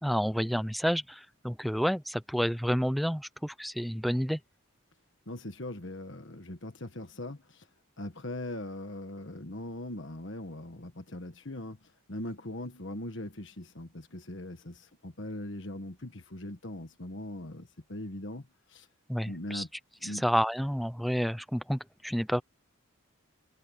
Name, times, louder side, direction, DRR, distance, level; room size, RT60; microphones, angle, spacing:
voice 1, 0.0-4.4 19.1-19.6 20.0-22.4, equal, ahead, 0.5 m, -30 dB
voice 2, 5.3-7.6 8.0-11.8 12.1-18.9 19.3-19.7 20.0-20.2, left 1 dB, 55° left, 1.5 m, -40 dB
head